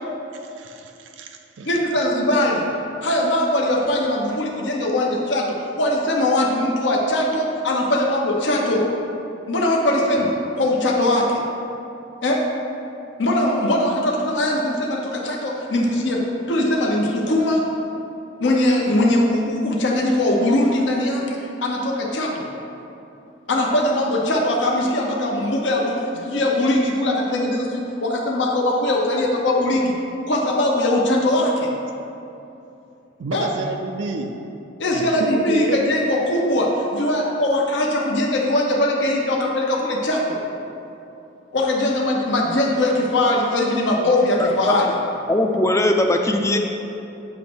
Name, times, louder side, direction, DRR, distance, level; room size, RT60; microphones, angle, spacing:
voice 1, 0.3-1.7 33.2-34.3 34.9-35.8, right 3 dB, 80° right, 4 dB, 0.4 m, -30 dB
voice 2, 1.7-2.7 3.0-8.8 9.5-11.4 12.2-12.4 13.2-17.6 18.4-22.4 23.5-29.9 30.3-31.7 33.3-33.5 34.8-40.4 41.5-44.9, left 1 dB, 70° left, -2 dB, 0.9 m, -21 dB
voice 3, 44.4-44.7 45.3-46.6, left 1 dB, 15° left, 4 dB, 0.4 m, -20 dB
9.0 x 3.1 x 6.1 m, 2.8 s
head